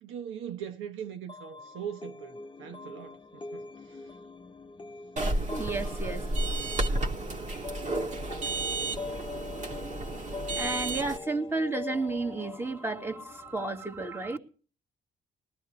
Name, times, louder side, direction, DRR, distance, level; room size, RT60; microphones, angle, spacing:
voice 1, 0.0-4.1 9.6-9.7, right 8 dB, 85° right, 1.2 m, -41 dB
sound 1, 1.3-13.9, left 4 dB, 25° left, 0.8 m, -43 dB
sound 2, 5.2-11.2, right 2 dB, 35° right, 1.8 m, -32 dB
voice 2, 5.5-6.3 10.6-14.4, right 3 dB, 10° right, 2.1 m, -32 dB
20.5 x 13.5 x 3.2 m
cardioid pair, 90°, 20 cm